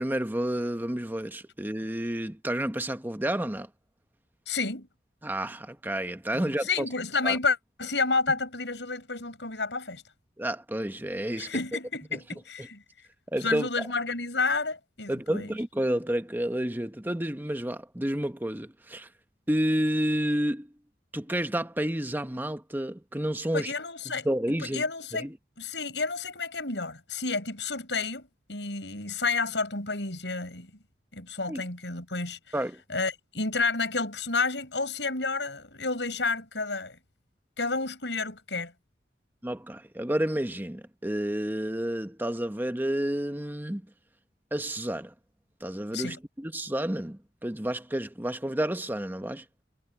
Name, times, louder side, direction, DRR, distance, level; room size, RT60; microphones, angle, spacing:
voice 1, 0.0-3.7 5.2-6.9 7.2-7.4 10.4-11.6 12.1-12.2 12.6-12.7 13.3-13.9 15.1-19.1 19.5-20.7 21.1-23.7 24.2-24.8 25.1-25.4 31.5-31.6 32.5-32.8 39.4-43.9 44.5-45.1 45.6-49.4, right 1 dB, 10° right, 1.1 m, -30 dB
voice 2, 4.5-4.9 6.3-10.0 11.4-12.8 13.4-15.5 23.5-24.3 24.6-25.3 25.6-30.7 31.1-32.6 32.9-37.0 37.6-38.7 45.9-46.2, left 4 dB, 85° left, 6.1 m, -30 dB
head